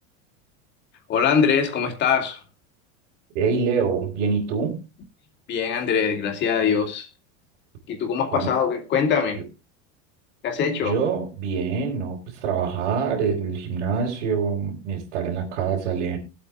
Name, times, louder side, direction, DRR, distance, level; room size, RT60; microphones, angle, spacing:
voice 1, 1.1-2.4 5.5-7.1 7.9-9.4 10.4-11.0, left 6 dB, 30° left, 2.6 m, -22 dB
voice 2, 3.3-4.8 8.3-8.5 9.3-9.4 10.8-16.2, right 6 dB, 85° right, 3.9 m, -25 dB
21.5 x 8.4 x 2.4 m
supercardioid pair, 165°, 35 cm